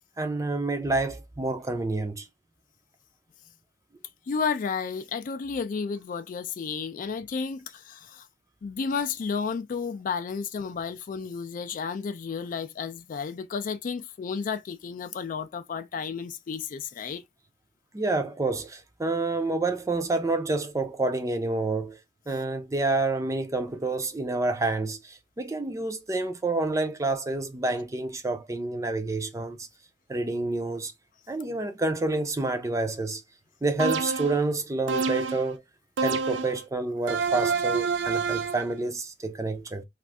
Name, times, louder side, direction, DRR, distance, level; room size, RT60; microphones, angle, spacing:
voice 1, 0.2-2.3 17.9-22.0 22.3-29.7 30.1-30.9 31.3-33.2 33.6-35.6 36.0-39.8, right 2 dB, 15° right, 0.4 m, -28 dB
voice 2, 4.3-8.3 8.6-17.2, left 5 dB, 45° left, 0.3 m, -32 dB
sound 1, 33.8-34.4 34.9-35.5 36.0-36.6 37.1-38.7, right 5 dB, 80° right, 0.4 m, -27 dB
2.6 x 2.5 x 3.2 m
head